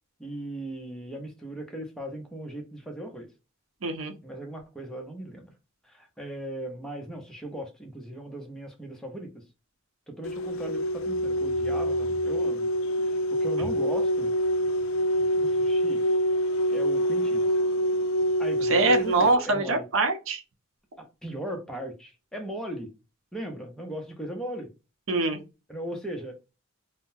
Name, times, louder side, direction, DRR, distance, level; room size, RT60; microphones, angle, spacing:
voice 1, 0.2-3.3 4.2-5.5 5.8-9.4 10.1-12.7 13.0-14.3 15.2-16.0 16.7-17.5 18.4-19.8 21.0-22.9 23.3-24.7 25.7-26.4, right 1 dB, 5° left, 0.7 m, -38 dB
voice 2, 3.8-4.1 18.6-20.4 25.1-25.4, right 3 dB, 70° right, 0.7 m, -24 dB
sound 1, 10.2-19.3, equal, 70° left, 0.4 m, -26 dB
3.7 x 2.1 x 2.6 m
head